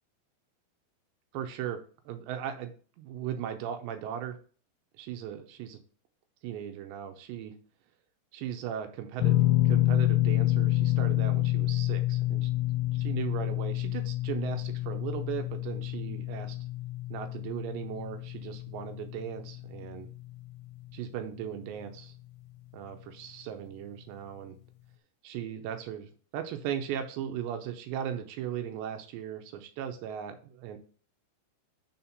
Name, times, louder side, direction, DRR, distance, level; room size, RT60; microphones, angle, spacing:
voice 1, 1.3-4.4 5.0-5.8 6.4-7.5 8.3-9.4 9.7-12.5 12.9-16.6 17.1-20.1 20.9-22.1 22.7-24.6 25.2-30.8, right 9 dB, 85° right, 7 dB, 2.9 m, -37 dB
sound 1, 9.2-21.4 21.7-21.9 23.6-23.7, left 16 dB, 90° left, 2.9 m, -28 dB
6.4 x 4.3 x 5.4 m, 0.41 s
omnidirectional pair, 5.1 m